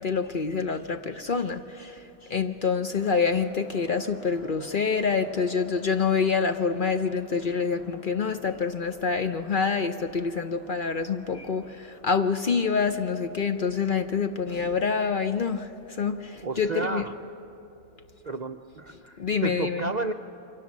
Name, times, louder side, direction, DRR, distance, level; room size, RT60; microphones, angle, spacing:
voice 1, 0.0-1.9 2.3-17.0 19.2-19.9, left 5 dB, 45° left, 8 dB, 0.7 m, -26 dB
sound 1, 2.8-17.6, right 1 dB, 85° left, 8.2 m, -54 dB
voice 2, 16.4-17.1 18.2-20.1, right 4 dB, 50° right, 5 dB, 0.5 m, -32 dB
28.5 x 23.5 x 7.3 m, 2.9 s
omnidirectional pair, 1.4 m